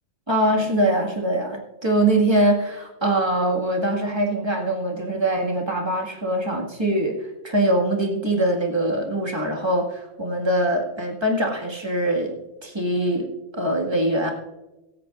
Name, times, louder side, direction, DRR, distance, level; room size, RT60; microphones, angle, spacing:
voice 1, 0.3-14.3, right 1 dB, 20° right, -1 dB, 1.9 m, -23 dB
23.0 x 8.7 x 2.5 m, 1.0 s
omnidirectional pair, 1.4 m